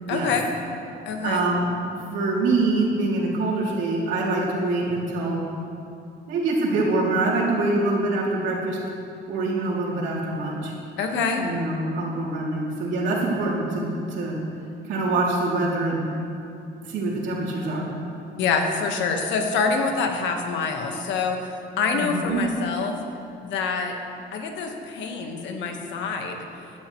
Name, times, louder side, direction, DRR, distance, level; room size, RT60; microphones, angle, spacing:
voice 1, 0.1-0.5 1.0-1.4 11.0-11.5 18.4-21.5 21.8-23.0 23.4-24.0 24.3-26.4, left 5 dB, 80° left, 4 dB, 1.4 m, -26 dB
voice 2, 1.2-5.4 6.3-8.8 9.3-10.7 11.4-14.4 14.9-16.1 16.9-17.9 21.9-22.4, right 2 dB, 80° right, -4 dB, 2.9 m, -25 dB
15.0 x 11.0 x 3.1 m, 2.6 s
cardioid pair, 135°, 19 cm